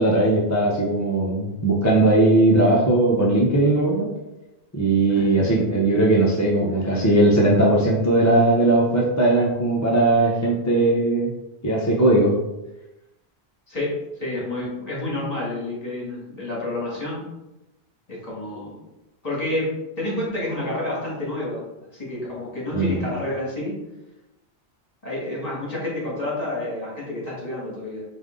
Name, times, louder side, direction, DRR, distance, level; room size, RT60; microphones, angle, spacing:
voice 1, 0.0-4.1 4.7-11.3 11.6-12.3 22.7-23.0, right 2 dB, 20° left, -4 dB, 0.6 m, -19 dB
voice 2, 5.1-5.4 13.7-17.3 18.1-18.8 19.2-21.6 21.9-23.8 25.0-28.0, left 1 dB, 35° left, -5 dB, 1.8 m, -29 dB
5.1 x 2.6 x 3.7 m, 0.96 s
omnidirectional pair, 1.1 m